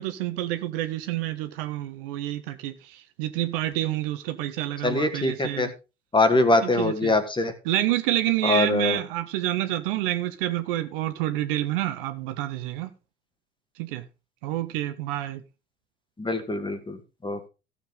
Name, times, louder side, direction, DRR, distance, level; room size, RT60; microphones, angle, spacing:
voice 1, 0.0-5.7 6.6-7.1 7.6-12.9 13.8-14.0 14.4-15.4, right 14 dB, 60° right, 1.2 m, -28 dB
voice 2, 4.8-5.7 6.1-7.5 8.4-9.0 16.2-17.5, left 2 dB, 15° left, 2.1 m, -23 dB
15.5 x 7.2 x 3.8 m
figure-of-eight pair, 60°, 31 cm